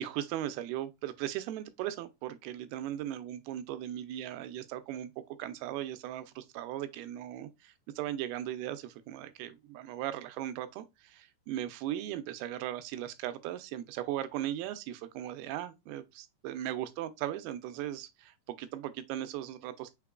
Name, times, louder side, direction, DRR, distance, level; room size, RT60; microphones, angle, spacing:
voice 1, 0.0-19.9, right 12 dB, 80° right, 2.3 m, -38 dB
5.8 x 3.6 x 2.3 m
omnidirectional pair, 4.6 m